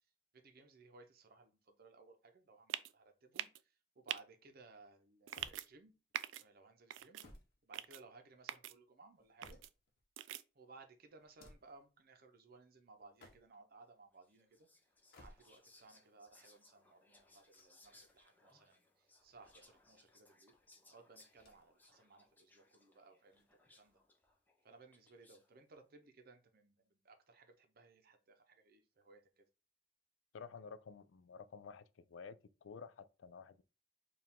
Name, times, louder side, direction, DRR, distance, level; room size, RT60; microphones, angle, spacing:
voice 1, 0.3-3.5 4.0-5.9 6.4-7.2 7.6-9.6 10.5-14.7 15.2-20.6 20.9-24.0 24.6-29.4, right 3 dB, 55° right, 0.7 m, -61 dB
sound 1, 2.7-2.9 3.3-3.6 4.1-4.2 5.3-5.7 6.1-6.4 6.9-7.3 7.7-8.0 8.5-8.7 9.4-9.7 10.2-10.4, right 12 dB, 90° right, 0.3 m, -42 dB
sound 2, 5.3-6.1 6.9-8.3 9.0-10.0 11.2-11.8 13.0-13.7 14.9-15.8 17.3-18.3 19.2-20.1 21.3-21.9 22.2-22.3 23.3-24.1, left 1 dB, 60° left, 0.9 m, -63 dB
Whispering, 14.2-25.5, left 2 dB, 10° left, 0.7 m, -68 dB
voice 2, 30.3-33.6, left 5 dB, 90° left, 0.4 m, -52 dB
4.6 x 2.5 x 3.6 m
head